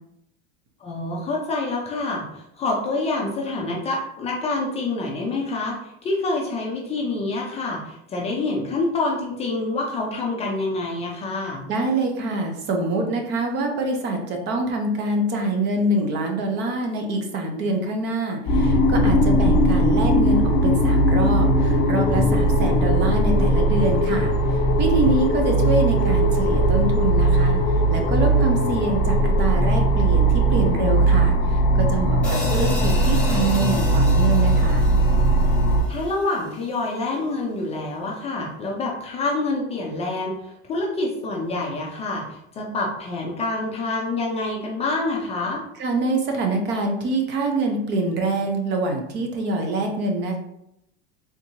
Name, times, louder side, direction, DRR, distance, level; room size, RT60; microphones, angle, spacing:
voice 1, 0.8-11.6 32.2-32.5 35.9-45.6, left 2 dB, 20° left, -2 dB, 0.4 m, -27 dB
voice 2, 11.7-27.6 27.9-34.9 45.8-50.4, right 2 dB, 35° right, 3 dB, 0.6 m, -25 dB
sound 1, 18.5-35.8, right 1 dB, 45° left, 1.0 m, -19 dB
sound 2, 32.2-36.6, left 2 dB, 5° left, 0.9 m, -33 dB
3.5 x 2.8 x 2.7 m, 0.80 s
supercardioid pair, 150°, 31 cm